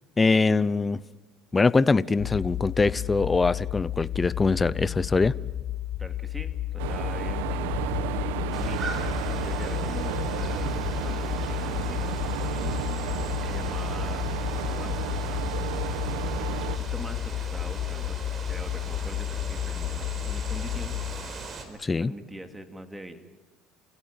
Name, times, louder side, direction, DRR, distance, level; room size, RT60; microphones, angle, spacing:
voice 1, 0.2-1.0 1.5-5.3 21.8-22.1, left 3 dB, 20° left, 19 dB, 0.7 m, -23 dB
sound 1, 2.2-21.2, left 13 dB, 60° left, 1.5 m, -32 dB
voice 2, 6.0-7.7 8.5-9.0 9.2-12.0 13.3-14.3 14.7-15.1 16.8-18.2 18.5-20.9 21.7-23.2, right 1 dB, 10° right, 7 dB, 2.6 m, -42 dB
sound 2, 6.8-16.8, right 11 dB, 90° right, 1.4 m, -33 dB
sound 3, 8.5-21.6, right 4 dB, 35° right, 4.4 m, -39 dB
29.0 x 16.5 x 9.0 m, 1.2 s
supercardioid pair, 100°, 0 cm